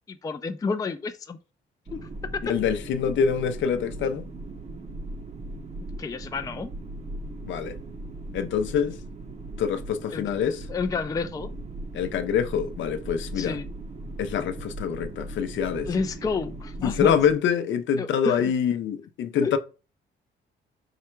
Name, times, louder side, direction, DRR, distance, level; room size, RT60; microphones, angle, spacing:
voice 1, 0.1-1.4 1.9-2.4 6.0-6.7 10.1-11.5 13.4-13.7 15.9-17.2 18.0-18.5 19.4-19.6, left 4 dB, 20° left, 0.4 m, -30 dB
sound 1, 1.9-17.3, right 2 dB, 35° right, 0.7 m, -38 dB
voice 2, 2.5-4.2 7.5-7.8 8.3-9.0 9.6-10.7 11.9-13.6 14.2-15.9 16.8-19.6, left 7 dB, 70° left, 0.6 m, -25 dB
4.7 x 2.2 x 4.4 m
cardioid pair, 90°, 20 cm